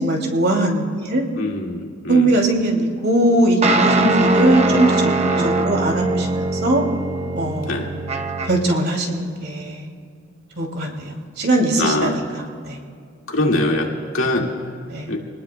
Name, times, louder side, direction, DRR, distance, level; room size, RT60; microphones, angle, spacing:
voice 1, 0.0-1.2 2.1-5.0 5.4-6.8 7.4-7.7 8.5-9.9 10.6-12.2 12.6-12.8 14.9-15.1, right 1 dB, 55° right, 1 dB, 2.5 m, -20 dB
voice 2, 1.3-2.4 5.3-5.8 7.7-7.9 11.8-12.2 13.3-14.7 15.1-15.2, left 2 dB, 80° left, 0 dB, 2.0 m, -23 dB
sound 1, 3.6-8.8, right 2 dB, 35° right, 0.7 m, -21 dB
26.0 x 19.0 x 2.2 m, 2.2 s
head